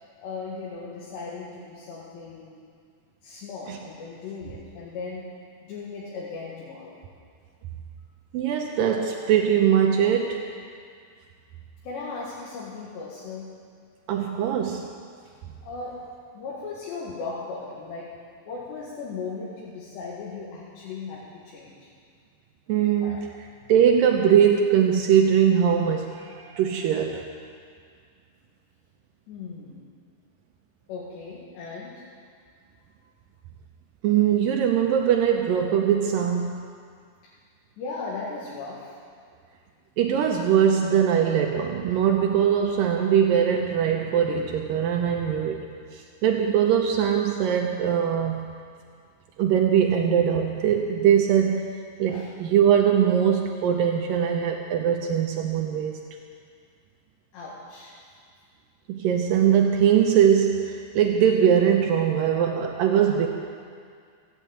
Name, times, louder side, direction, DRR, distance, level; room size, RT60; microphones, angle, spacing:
voice 1, 0.2-2.6 3.2-5.3 5.6-6.9 11.8-13.5 15.6-16.0 16.3-18.1 18.5-21.9 23.0-23.2 29.3-29.9 30.9-32.0 37.8-38.9 52.1-52.3 57.3-57.9, left 4 dB, 75° left, -6 dB, 4.0 m, -37 dB
voice 2, 8.3-10.4 14.1-14.9 22.7-23.3 23.7-27.3 34.0-36.6 40.0-48.5 49.4-51.7 52.0-56.0 58.9-63.3, right 8 dB, 85° right, 2 dB, 1.9 m, -21 dB
15.5 x 8.9 x 9.0 m, 2.1 s
omnidirectional pair, 5.1 m